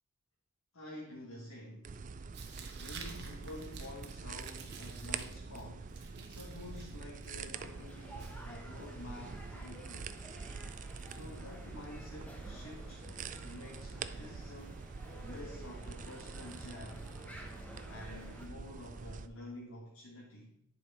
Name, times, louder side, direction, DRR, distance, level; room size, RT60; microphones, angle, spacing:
voice 1, 0.7-2.0 2.7-10.2 11.1-13.1 13.4-14.9 15.2-17.1 17.9-20.5, left 1 dB, 90° left, -4 dB, 1.5 m, -49 dB
sound 1, 1.8-19.3, right 5 dB, 40° right, 0.3 m, -45 dB
Tearing, 2.3-9.0, right 6 dB, 55° right, 1.1 m, -53 dB
sound 2, 7.5-18.5, equal, 5° left, 0.9 m, -53 dB
10.5 x 4.8 x 4.2 m, 0.72 s
head